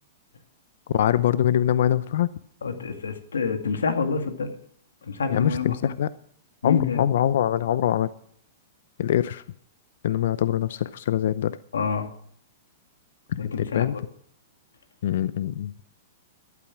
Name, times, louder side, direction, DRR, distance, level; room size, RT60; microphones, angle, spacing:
voice 1, 0.9-2.3 5.3-6.1 6.6-8.1 9.0-9.4 10.0-11.6 13.3-13.9 15.0-15.7, left 11 dB, 70° left, 16 dB, 0.6 m, -23 dB
voice 2, 2.6-4.5 5.0-5.9 6.6-7.0 11.7-12.1 13.4-14.0, left 5 dB, 90° left, 7 dB, 2.0 m, -27 dB
13.0 x 12.0 x 6.1 m, 0.65 s
hypercardioid pair, 125°, 0 cm